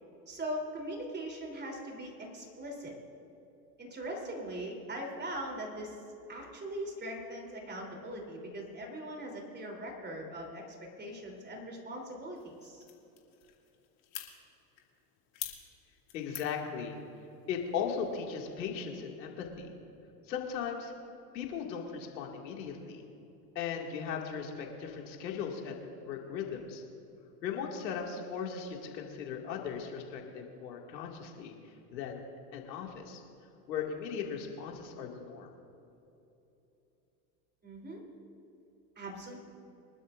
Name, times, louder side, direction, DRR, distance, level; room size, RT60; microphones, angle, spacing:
voice 1, 0.3-2.9 3.8-6.0 6.3-10.6 11.0-12.8 37.6-38.0 38.9-39.4, right 1 dB, 20° right, 0 dB, 3.3 m, -40 dB
sound 1, 12.4-18.3, left 12 dB, 55° left, 2.4 m, -48 dB
voice 2, 16.1-17.0 17.5-19.7 20.3-20.9 21.3-23.0 23.6-25.8 26.0-26.8 27.4-31.5 31.9-32.2 32.5-33.2 33.7-35.5, left 7 dB, 80° left, 1 dB, 2.3 m, -37 dB
24.5 x 12.0 x 2.5 m, 3.0 s
hypercardioid pair, 100°, 50 cm